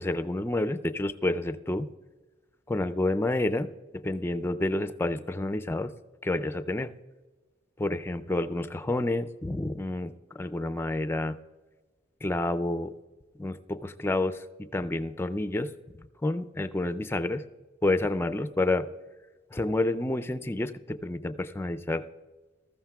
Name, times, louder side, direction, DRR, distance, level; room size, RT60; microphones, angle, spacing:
voice 1, 0.0-1.9 2.7-3.7 4.0-5.9 6.2-6.9 7.8-11.4 12.2-12.9 13.4-15.7 16.2-17.4 17.8-18.9 19.5-22.0, left 2 dB, 10° left, 11 dB, 0.4 m, -29 dB
19.0 x 14.0 x 2.3 m, 1.3 s
head